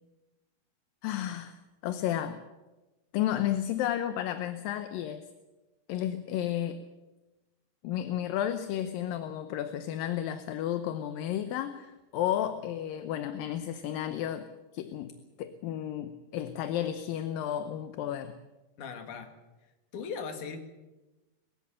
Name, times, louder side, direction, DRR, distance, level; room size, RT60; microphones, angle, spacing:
voice 1, 1.0-2.4 3.1-5.2 5.9-6.8 7.8-14.5 14.7-18.4, left 11 dB, 75° left, 10 dB, 2.4 m, -32 dB
voice 2, 18.8-19.3 19.9-20.6, left 5 dB, 55° left, 6 dB, 3.3 m, -38 dB
21.5 x 16.0 x 8.9 m, 1.1 s
omnidirectional pair, 4.5 m